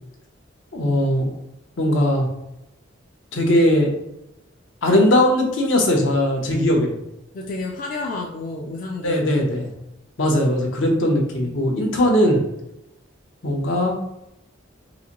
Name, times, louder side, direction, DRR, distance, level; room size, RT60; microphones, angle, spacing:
voice 1, 0.7-1.3 1.8-2.3 3.3-3.9 4.8-7.0 9.0-9.7 10.2-12.4 13.4-14.0, left 1 dB, 75° left, 1 dB, 0.8 m, -19 dB
voice 2, 7.3-9.2 11.4-11.7, left 3 dB, 45° left, 0 dB, 0.4 m, -31 dB
3.9 x 2.5 x 2.9 m, 0.86 s
head